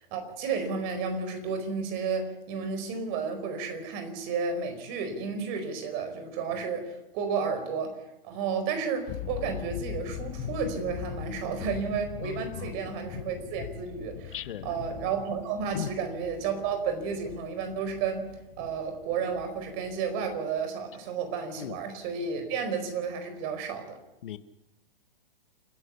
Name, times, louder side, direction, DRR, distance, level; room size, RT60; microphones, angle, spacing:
voice 1, 0.1-8.0 8.2-14.4 14.6-18.3 18.6-24.0, right 5 dB, 40° right, 7 dB, 4.8 m, -32 dB
sound 1, 9.1-20.6, left 9 dB, 35° left, 2.3 m, -41 dB
voice 2, 12.2-12.7 14.3-14.7 15.7-15.9 21.6-21.8 24.2-24.4, left 10 dB, 65° left, 13 dB, 1.3 m, -37 dB
29.5 x 11.0 x 8.3 m, 0.94 s
hypercardioid pair, 135°, 29 cm